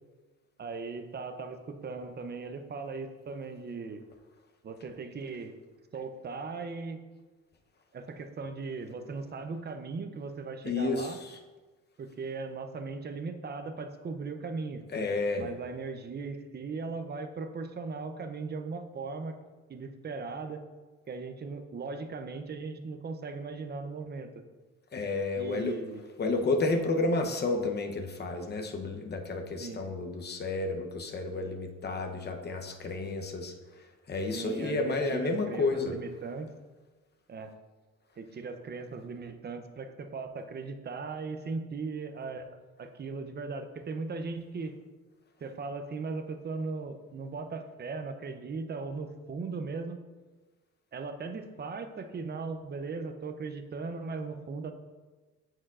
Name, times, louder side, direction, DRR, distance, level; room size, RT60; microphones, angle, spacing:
voice 1, 0.6-4.0 4.6-5.6 5.9-7.0 7.9-11.2 12.0-14.8 15.4-19.3 19.7-20.6 21.1-24.3 25.3-26.0 29.6-29.8 34.3-36.5 37.3-37.5 38.2-44.8 45.4-50.0 50.9-54.7, right 4 dB, 35° right, 7 dB, 0.6 m, -38 dB
voice 2, 10.6-11.4 14.9-15.5 24.9-25.8 26.2-36.0, left 3 dB, 35° left, 4 dB, 0.8 m, -31 dB
8.6 x 4.6 x 2.5 m, 1.3 s
cardioid pair, 90°, 30 cm